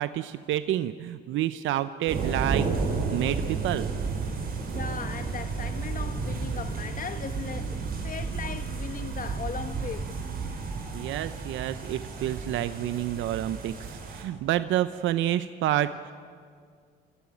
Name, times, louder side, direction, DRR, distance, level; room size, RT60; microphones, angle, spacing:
voice 1, 0.0-2.7 3.1-3.9 10.9-16.1, right 13 dB, 70° right, 0.7 m, -29 dB
sound 1, 2.1-14.2, right 4 dB, 45° right, 4.3 m, -32 dB
voice 2, 4.7-10.1 14.0-14.1, left 6 dB, 40° left, 1.5 m, -38 dB
26.5 x 14.5 x 9.2 m
supercardioid pair, 80°, 21 cm